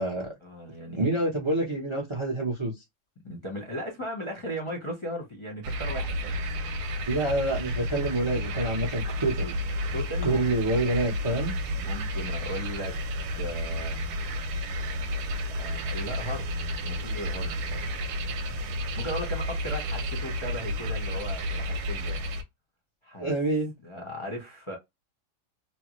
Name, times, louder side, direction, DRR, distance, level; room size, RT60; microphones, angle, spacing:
voice 1, 0.4-1.0 3.2-7.0 9.9-10.5 11.7-12.9 13.3-14.1 15.6-16.5 16.8-17.8 19.0-22.2 23.0-23.3 23.8-24.8, equal, 25° left, 0.7 m, -37 dB
voice 2, 0.9-2.8 7.1-9.5 10.2-11.5 23.2-23.7, right 2 dB, 40° right, 0.4 m, -27 dB
sound 1, 5.6-22.4, equal, 65° right, 1.1 m, -31 dB
3.3 x 2.1 x 3.0 m
omnidirectional pair, 2.0 m